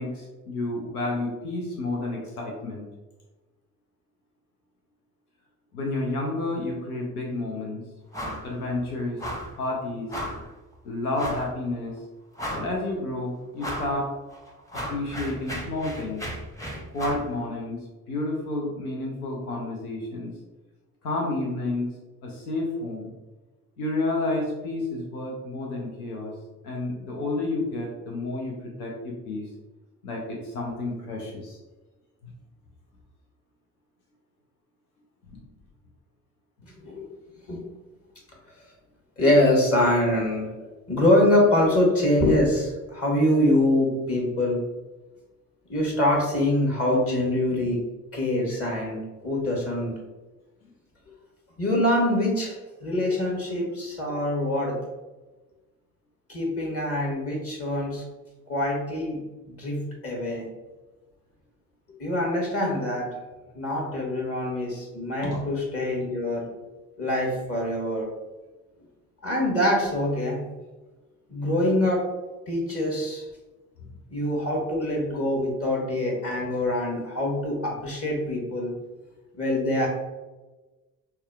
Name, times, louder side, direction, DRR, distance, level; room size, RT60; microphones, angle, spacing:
voice 1, 0.0-2.8 5.7-7.8 8.4-9.2 9.6-10.1 10.8-12.0 12.5-14.1 14.7-16.2 16.9-20.3 21.0-21.9 22.2-23.1 23.8-26.3 26.6-29.5 30.0-31.6 35.3-35.4 65.2-65.4 73.8-73.9, left 2 dB, 80° left, -1 dB, 0.7 m, -30 dB
sound 1, 8.1-8.5 8.7-8.9 9.2-9.6 10.1-10.5 11.1-11.5 12.0-12.1 12.4-12.9 13.6-13.9 14.3-17.3, equal, 5° left, 0.8 m, -34 dB
voice 2, 39.2-40.5 40.9-44.6 45.7-47.8 48.1-49.0 49.2-49.9 51.6-54.8 56.3-58.0 58.5-59.2 59.5-60.4 62.0-63.1 63.5-66.5 67.0-68.1 69.2-70.4 71.3-72.1 72.5-73.3 74.1-78.7 79.3-79.9, left 1 dB, 30° left, -1 dB, 1.2 m, -24 dB
5.5 x 2.2 x 2.3 m, 1.2 s
figure-of-eight pair, 45°, 44 cm